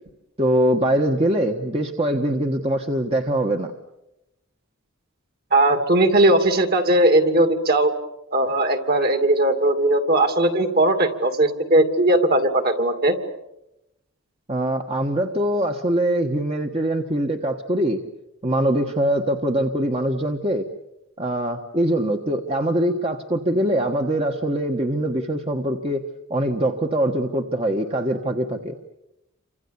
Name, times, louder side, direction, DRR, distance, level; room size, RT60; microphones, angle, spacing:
voice 1, 0.4-3.7 14.5-18.0 18.4-20.6 21.2-26.0 26.3-28.9, right 1 dB, 30° right, 4 dB, 1.4 m, -23 dB
voice 2, 5.5-7.9 8.3-13.1, right 1 dB, 45° right, 7 dB, 2.6 m, -18 dB
29.5 x 26.0 x 7.2 m, 0.90 s
head